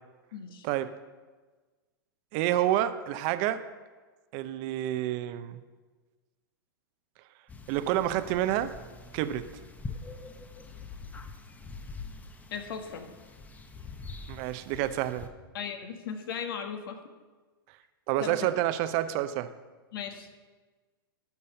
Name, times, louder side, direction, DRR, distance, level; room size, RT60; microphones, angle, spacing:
voice 1, 0.3-0.6 12.5-13.1 15.5-17.0 18.2-18.5 19.9-20.3, left 7 dB, 70° left, 6 dB, 1.4 m, -37 dB
voice 2, 2.3-3.6 4.3-5.6 7.7-8.7 9.1-9.5 14.3-15.3 18.1-19.5, right 13 dB, 45° right, 12 dB, 0.7 m, -28 dB
sound 1, 7.5-15.3, left 3 dB, 10° left, 0.8 m, -44 dB
12.0 x 5.4 x 6.5 m, 1.3 s
hypercardioid pair, 120°, 12 cm